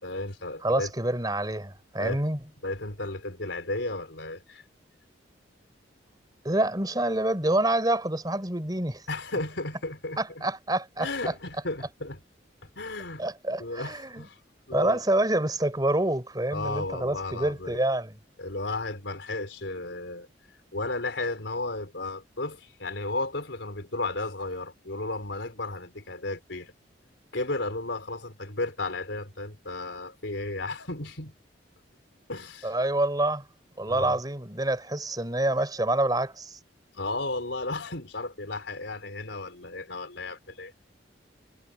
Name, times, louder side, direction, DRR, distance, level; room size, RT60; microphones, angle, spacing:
voice 1, 0.0-0.9 2.0-2.2 2.6-4.6 9.1-10.2 11.0-12.2 12.8-13.2 13.6-14.4 14.7-15.0 16.5-17.8 18.4-20.3 20.7-26.7 27.3-31.3 32.3-32.7 33.9-34.2 36.9-40.8, left 2 dB, 85° left, 4.0 m, -34 dB
voice 2, 0.6-2.4 6.4-9.0 10.2-11.1 13.2-14.2 14.7-18.1 32.6-33.5 33.8-36.6, right 1 dB, 20° right, 4.1 m, -27 dB
head